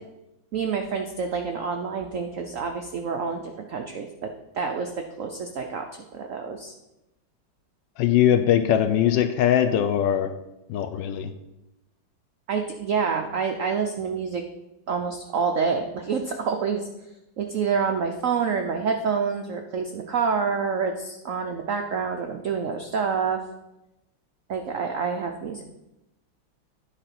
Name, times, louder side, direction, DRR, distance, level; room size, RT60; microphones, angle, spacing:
voice 1, 0.5-4.9 5.2-5.8 6.1-6.7 12.5-14.4 14.9-16.9 17.4-23.4 24.5-25.6, right 5 dB, 80° right, 4 dB, 0.7 m, -27 dB
voice 2, 8.0-10.3 10.7-11.3, left 10 dB, 75° left, 9 dB, 1.1 m, -21 dB
10.0 x 4.2 x 5.8 m, 0.93 s
omnidirectional pair, 2.2 m